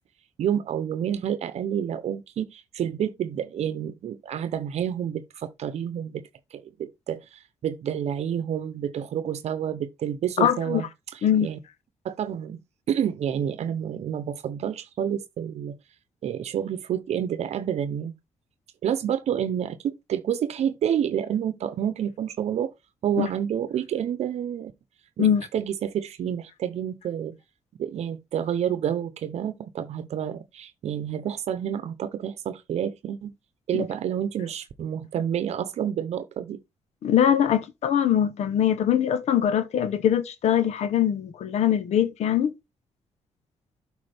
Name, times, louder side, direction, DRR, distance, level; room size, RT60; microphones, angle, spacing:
voice 1, 0.4-10.8 11.1-11.6 12.0-12.6 12.9-15.8 16.2-18.1 18.8-22.7 23.0-24.7 25.2-25.3 25.5-27.4 27.8-33.3 33.7-36.6, right 9 dB, 75° right, 0.8 m, -29 dB
voice 2, 10.4-10.8 11.2-11.5 23.2-23.3 25.2-25.5 33.7-33.8 37.0-42.5, left 9 dB, 85° left, 0.9 m, -22 dB
12.0 x 4.8 x 3.5 m
cardioid pair, 110°, 11 cm